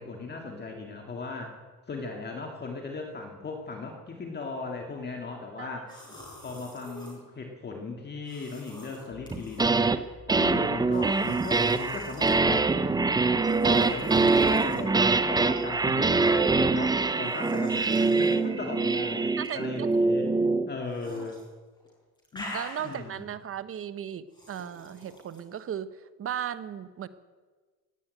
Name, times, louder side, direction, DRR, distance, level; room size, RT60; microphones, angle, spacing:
voice 1, 0.0-1.6 1.9-6.1 6.4-10.0 10.4-20.3 20.7-21.4 22.3-23.3, left 3 dB, 25° left, 2 dB, 2.1 m, -38 dB
sound 1, 5.9-7.2 8.2-9.6 10.9-12.4 13.4-14.9 15.7-16.0 17.2-18.4 19.3-20.0 20.9-21.4 21.8-23.2 24.3-25.4, left 1 dB, 10° left, 6.3 m, -46 dB
sound 2, 9.3-10.0 10.3-20.7, right 3 dB, 10° right, 0.6 m, -24 dB
voice 2, 19.4-20.1 21.0-21.3 22.5-27.1, right 9 dB, 35° right, 14 dB, 0.9 m, -37 dB
17.0 x 8.6 x 9.1 m, 1.4 s
cardioid pair, 120°, 37 cm